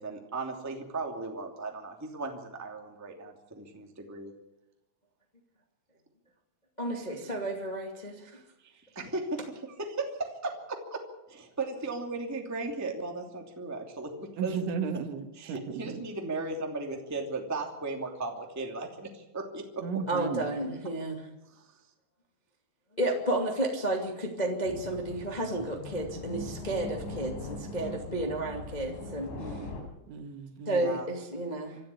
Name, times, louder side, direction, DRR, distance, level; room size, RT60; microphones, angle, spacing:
voice 1, 0.0-4.3 8.6-11.0 11.3-14.6 15.3-19.8 21.5-21.6 29.4-29.8 30.7-31.1, right 3 dB, 5° right, 2 dB, 1.2 m, -36 dB
voice 2, 6.8-8.4 20.1-21.2 23.0-29.3 30.6-31.8, right 1 dB, 20° left, 1 dB, 1.1 m, -32 dB
voice 3, 14.4-16.0 19.8-20.5 30.1-30.8, right 6 dB, 80° right, 7 dB, 4.0 m, -34 dB
sound 1, 24.6-29.8, left 2 dB, 70° left, 6.1 m, -40 dB
26.0 x 13.5 x 8.5 m, 0.94 s
omnidirectional pair, 5.4 m